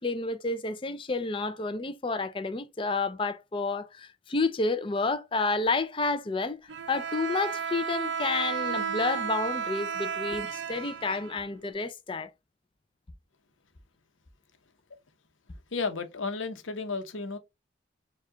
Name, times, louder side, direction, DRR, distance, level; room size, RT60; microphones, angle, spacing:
voice 1, 0.0-6.6 6.9-12.3, left 3 dB, 25° left, 0.4 m, -30 dB
Bowed string instrument, 6.7-11.7, right 6 dB, 70° right, 0.5 m, -33 dB
voice 2, 15.7-17.4, left 4 dB, 90° left, 0.9 m, -33 dB
4.6 x 2.4 x 3.7 m
head